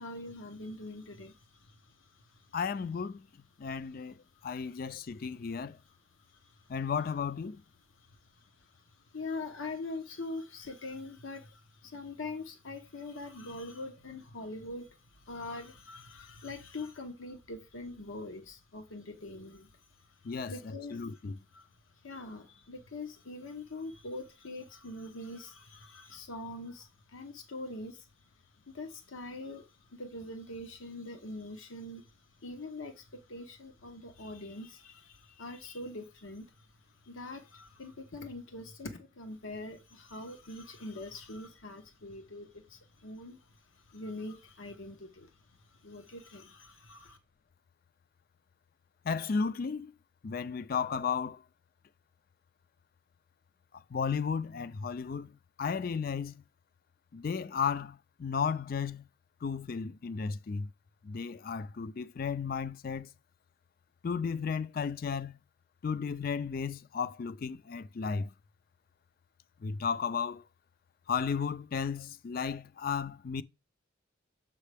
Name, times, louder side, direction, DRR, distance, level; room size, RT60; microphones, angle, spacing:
voice 1, 0.0-2.6 3.9-4.0 4.3-4.9 6.3-6.7 7.9-21.2 21.5-21.7 22.0-28.1 28.7-36.7 37.0-45.3 45.6-47.2, left 2 dB, 85° left, 1.0 m, -44 dB
voice 2, 2.5-3.3 3.6-5.8 6.7-7.6 20.2-21.3 49.0-49.9 50.2-51.4 53.9-55.3 55.6-56.4 57.1-59.1 59.4-60.7 61.0-63.1 64.0-65.4 65.8-68.3 69.6-70.4 71.1-73.4, left 6 dB, 45° left, 0.4 m, -34 dB
7.3 x 5.5 x 3.4 m
head